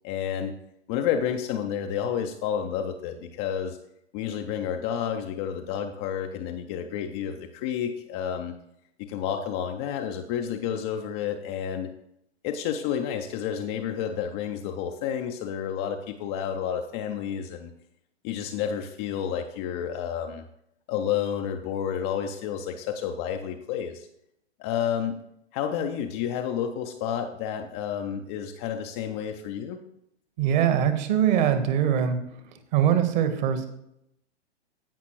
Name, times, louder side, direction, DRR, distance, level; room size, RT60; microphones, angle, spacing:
voice 1, 0.0-0.5 0.9-3.8 4.1-8.5 9.0-11.9 12.4-17.7 18.2-20.4 20.9-24.1 24.6-25.2 25.5-29.8, left 8 dB, 20° left, 5 dB, 0.4 m, -30 dB
voice 2, 30.4-32.2 32.7-33.7, right 9 dB, 40° right, 9 dB, 1.3 m, -22 dB
16.0 x 5.7 x 3.1 m, 0.78 s
figure-of-eight pair, 110°, 34 cm